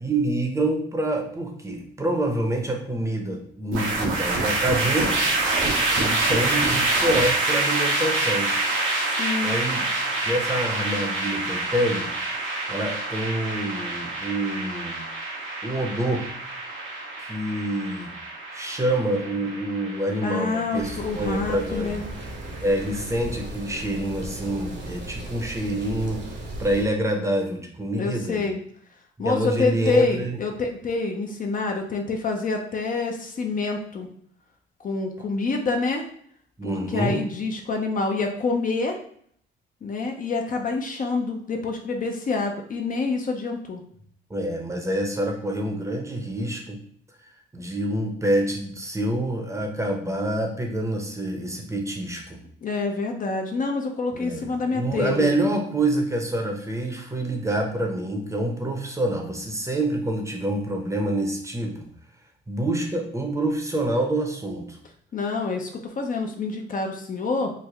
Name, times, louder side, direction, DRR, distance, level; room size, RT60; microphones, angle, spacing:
voice 1, 0.0-5.1 5.9-8.5 9.4-9.9 10.2-12.1 12.7-15.0 15.6-16.3 17.3-18.1 18.5-21.9 22.6-26.2 26.6-28.4 29.2-30.4 36.6-37.3 44.3-46.8 47.5-52.4 54.1-61.9 62.5-64.8, right 1 dB, 15° right, 2 dB, 0.7 m, -26 dB
sound 1, 3.7-23.0, right 2 dB, 85° right, 0.8 m, -27 dB
voice 2, 9.2-9.6 20.2-22.0 28.0-28.6 29.2-34.1 34.8-36.0 36.6-39.0 39.8-43.8 52.6-55.3 65.1-67.5, left 3 dB, 45° left, 3 dB, 0.5 m, -27 dB
sound 2, 20.7-26.9, right 1 dB, 60° right, 0.9 m, -36 dB
3.2 x 2.1 x 3.5 m, 0.62 s
cardioid pair, 90°, 20 cm